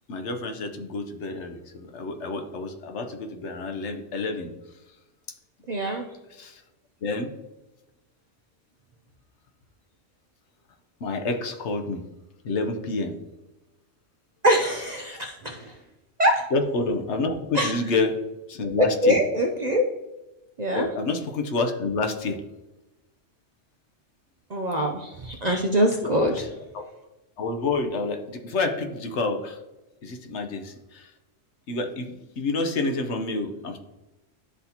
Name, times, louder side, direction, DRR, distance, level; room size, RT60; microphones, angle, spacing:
voice 1, 0.1-4.5 6.4-6.6 7.0-7.3 11.0-12.0 12.4-13.1 16.5-18.1 18.5-19.2 20.7-22.4 26.0-26.4 26.7-26.8 27.4-29.6 30.0-31.1 31.7-33.8, left 3 dB, 65° left, 6 dB, 1.0 m, -28 dB
voice 2, 5.7-6.1 14.4-15.8 16.2-16.5 17.5-17.7 18.8-19.9 20.6-20.9 24.5-26.5, equal, 45° right, 2 dB, 0.5 m, -23 dB
11.5 x 4.0 x 2.8 m, 1.0 s
omnidirectional pair, 1.3 m